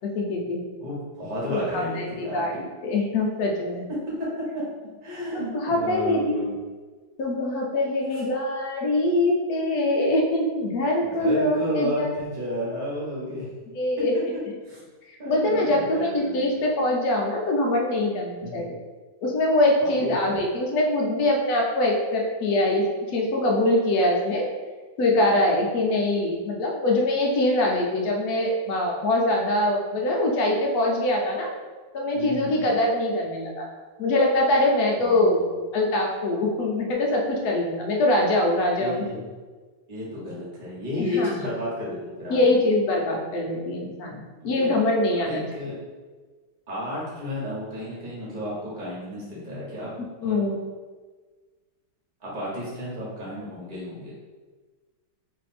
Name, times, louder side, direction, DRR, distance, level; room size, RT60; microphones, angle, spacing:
voice 1, 0.0-0.6 1.5-3.8 5.3-6.5 7.2-12.1 13.7-14.1 15.3-18.8 19.2-24.5 25.0-31.5 31.9-33.6 34.0-35.4 35.7-39.0 41.0-41.3 42.3-45.5 50.2-50.6, left 1 dB, 65° left, 0 dB, 0.9 m, -23 dB
voice 2, 0.8-2.4 4.1-4.6 5.0-6.5 8.1-8.2 11.0-13.5 14.7-14.8 15.2-16.5 18.4-18.7 19.8-20.4 32.1-32.7 35.0-35.6 38.8-39.2 39.9-42.5 44.4-44.7 45.1-45.8 46.7-49.9 50.2-50.4 52.2-54.1, left 1 dB, 30° right, -7 dB, 1.1 m, -32 dB
3.2 x 2.6 x 4.2 m, 1.4 s
omnidirectional pair, 2.2 m